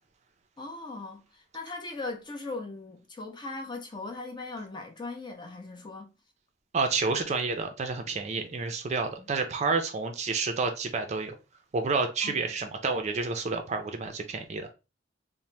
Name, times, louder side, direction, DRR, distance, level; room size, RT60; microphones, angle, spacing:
voice 1, 0.6-6.1 9.2-9.3 12.2-12.4, left 3 dB, 25° left, 0.5 m, -39 dB
voice 2, 6.7-11.3 11.7-14.7, right 4 dB, 35° right, 0.4 m, -29 dB
2.7 x 2.0 x 3.1 m
head